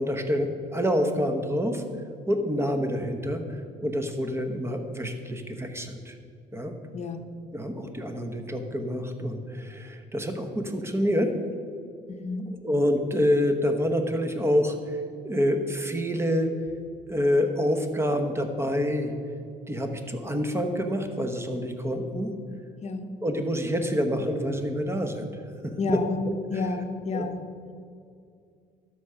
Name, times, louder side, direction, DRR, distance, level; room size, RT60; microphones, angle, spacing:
voice 1, 0.0-1.8 2.3-3.4 3.8-6.1 6.5-6.7 7.5-11.3 12.6-15.0 15.2-16.5 17.1-19.1 19.7-22.3 23.2-25.3 25.6-26.0 26.3-26.7 27.1-27.3, equal, 15° right, 6 dB, 1.0 m, -27 dB
voice 2, 6.9-7.3 12.1-12.5 22.8-23.1 25.8-26.2 26.5-27.4, left 3 dB, 40° left, 7 dB, 0.9 m, -30 dB
12.5 x 5.0 x 5.7 m, 2.4 s
cardioid pair, 110°, 17 cm